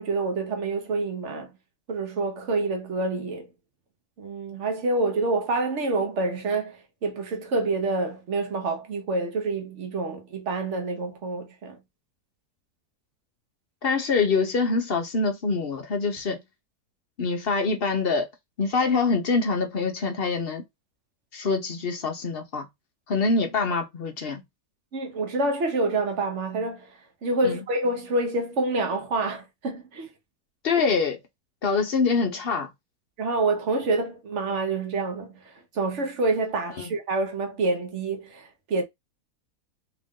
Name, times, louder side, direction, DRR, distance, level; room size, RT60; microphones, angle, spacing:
voice 1, 0.0-1.5 1.9-3.5 4.2-11.8 24.9-27.0 27.2-30.1 33.2-38.8, right 2 dB, 50° right, 1.1 m, -27 dB
voice 2, 13.8-16.4 17.2-18.3 18.6-20.6 21.3-22.7 23.1-24.4 27.4-27.6 30.6-31.2 31.6-32.7 36.8-36.9, left 4 dB, 50° left, 0.7 m, -25 dB
3.5 x 2.6 x 3.6 m
omnidirectional pair, 1.8 m